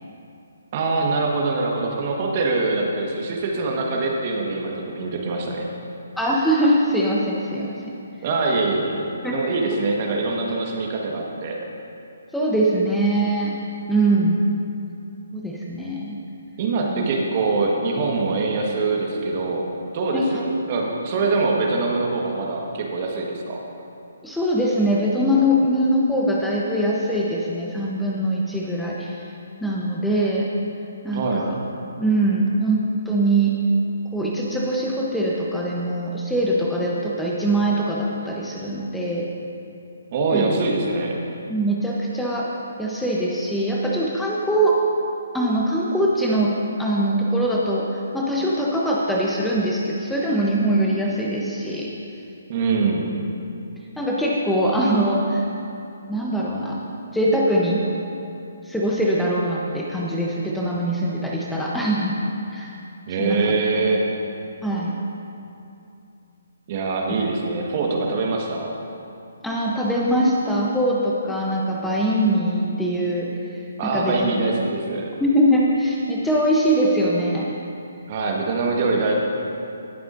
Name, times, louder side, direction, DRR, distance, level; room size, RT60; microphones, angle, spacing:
voice 1, 0.7-5.7 8.2-11.6 16.6-19.7 19.9-23.6 31.1-31.5 40.1-41.1 52.5-53.1 63.1-64.0 66.7-68.7 73.8-75.1 78.1-79.1, right 3 dB, 40° right, -1 dB, 1.5 m, -23 dB
voice 2, 6.2-7.7 9.2-9.3 12.3-13.5 13.9-14.4 15.3-16.2 16.8-17.0 20.1-20.4 24.2-29.2 29.6-30.5 31.0-31.6 32.0-32.8 33.1-33.5 34.1-39.3 40.3-40.5 41.5-42.5 42.8-44.8 45.3-46.5 46.8-51.9 54.0-55.4 56.1-56.8 57.1-57.8 58.7-62.2 62.5-62.7 63.2-63.5 64.6-64.9 69.4-73.3 73.9-74.3 75.2-77.5, right 1 dB, 5° left, -5 dB, 0.9 m, -22 dB
18.0 x 7.7 x 2.6 m, 2.7 s
figure-of-eight pair, 140°, 0 cm